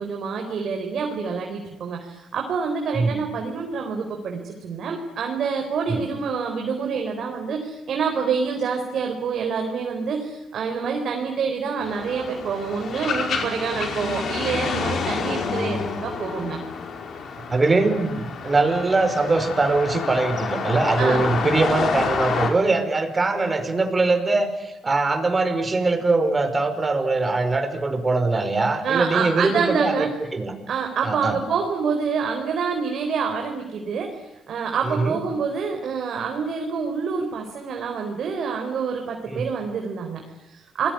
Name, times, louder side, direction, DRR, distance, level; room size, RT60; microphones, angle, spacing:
voice 1, 0.0-16.6 21.0-21.2 28.8-30.1 30.7-40.9, right 5 dB, 65° right, 3 dB, 4.3 m, -27 dB
sound 1, 11.8-22.5, left 5 dB, 60° left, 5.1 m, -28 dB
voice 2, 17.5-29.9 30.3-30.5 31.0-31.4 34.9-35.2 39.3-39.5, right 3 dB, 25° right, 7 dB, 5.4 m, -22 dB
29.0 x 21.0 x 9.9 m, 0.92 s
cardioid pair, 90°, 0 cm